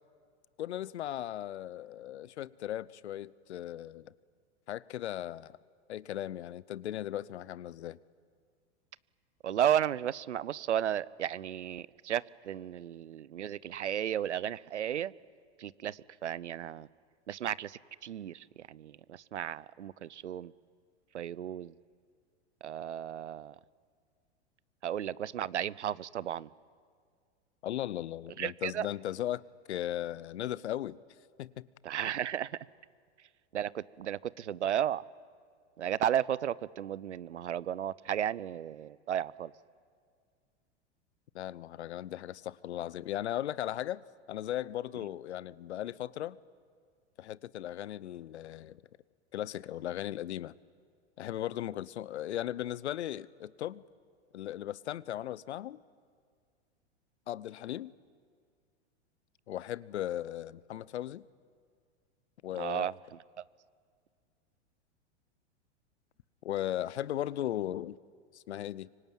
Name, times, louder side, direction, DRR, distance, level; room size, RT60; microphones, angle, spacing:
voice 1, 0.6-4.1 4.7-5.6 5.9-8.0 27.6-29.4 29.7-31.0 31.4-31.7 41.3-44.0 44.3-46.4 47.2-48.8 49.3-50.5 51.2-53.8 54.3-55.8 57.3-57.9 59.5-61.2 62.4-62.9 66.4-68.0 68.3-68.9, left 12 dB, 70° left, 21 dB, 0.8 m, -37 dB
voice 2, 9.4-15.1 15.6-16.9 17.3-20.5 21.1-21.7 22.6-23.6 24.8-26.5 28.4-28.9 31.8-32.5 33.5-35.0 35.8-39.5 62.6-62.9, right 10 dB, 80° right, 22 dB, 0.7 m, -34 dB
25.0 x 24.5 x 9.2 m, 2.1 s
hypercardioid pair, 95°, 34 cm